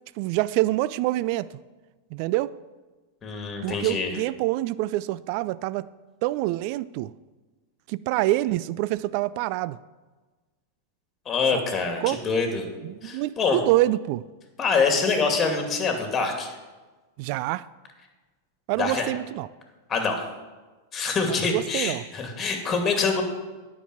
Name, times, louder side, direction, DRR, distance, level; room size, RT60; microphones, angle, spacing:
voice 1, 0.2-1.5 2.1-2.5 3.6-5.9 6.2-7.1 7.9-9.8 11.5-11.6 12.0-12.2 12.8-14.2 17.2-17.7 18.7-19.5 21.4-22.0, right 17 dB, 50° right, 18 dB, 0.3 m, -26 dB
voice 2, 3.2-4.1 11.3-12.6 13.0-13.6 14.6-16.5 18.8-19.1 19.9-20.2 20.9-23.2, left 4 dB, 25° left, 4 dB, 2.4 m, -25 dB
9.9 x 6.0 x 7.7 m, 1.3 s
hypercardioid pair, 95°, 0 cm